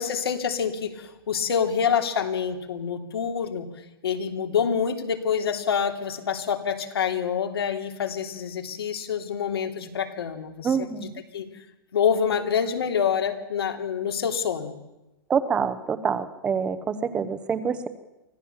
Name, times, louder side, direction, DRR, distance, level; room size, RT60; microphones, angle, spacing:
voice 1, 0.0-3.7 4.0-11.5 11.9-14.7, left 7 dB, 80° left, 5 dB, 3.1 m, -27 dB
voice 2, 10.6-11.2 15.3-17.9, right 6 dB, 10° right, 12 dB, 0.7 m, -26 dB
25.0 x 16.0 x 7.1 m, 0.98 s
hypercardioid pair, 180°, 13 cm